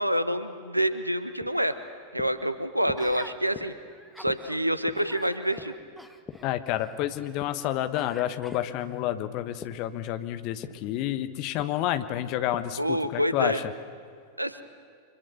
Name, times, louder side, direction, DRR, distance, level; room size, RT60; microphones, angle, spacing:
voice 1, 0.0-1.8 2.1-3.7 4.2-5.7 12.8-13.6 14.4-14.6, equal, 90° right, 12 dB, 1.1 m, -27 dB
sound 1, 0.9-8.8 9.1-12.9, left 7 dB, 25° left, 1.6 m, -46 dB
Gasp, 3.0-3.4 3.9-4.6 4.9-7.4 7.9-9.0 9.6-9.8, equal, ahead, 1.4 m, -48 dB
voice 2, 6.4-13.6, left 13 dB, 45° left, 10 dB, 1.3 m, -29 dB
30.0 x 25.0 x 6.7 m, 2.2 s
figure-of-eight pair, 90°, 0 cm